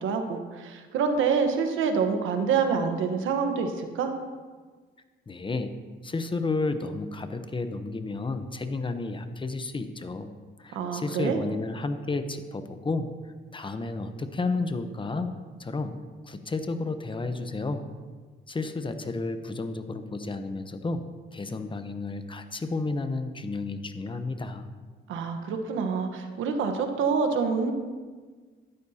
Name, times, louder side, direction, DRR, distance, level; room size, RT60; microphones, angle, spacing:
voice 1, 0.0-4.1 10.7-11.4 25.1-27.7, right 5 dB, 85° right, 6 dB, 1.2 m, -26 dB
voice 2, 5.3-5.7 6.0-10.3 10.6-13.1 13.5-15.3 15.6-15.9 16.2-17.9 18.5-21.0 21.3-24.7, left 3 dB, 25° left, 9 dB, 0.9 m, -32 dB
13.5 x 12.0 x 2.9 m, 1.5 s
cardioid pair, 90°, 20 cm